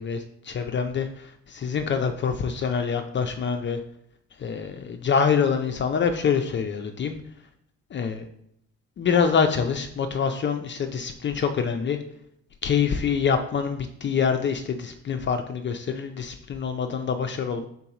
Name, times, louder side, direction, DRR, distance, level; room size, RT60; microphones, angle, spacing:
voice 1, 0.0-3.8 4.4-7.1 7.9-8.3 9.0-12.0 12.6-17.7, left 6 dB, 40° left, 6 dB, 0.4 m, -25 dB
3.8 x 2.8 x 4.7 m, 0.70 s
cardioid pair, 90°, 30 cm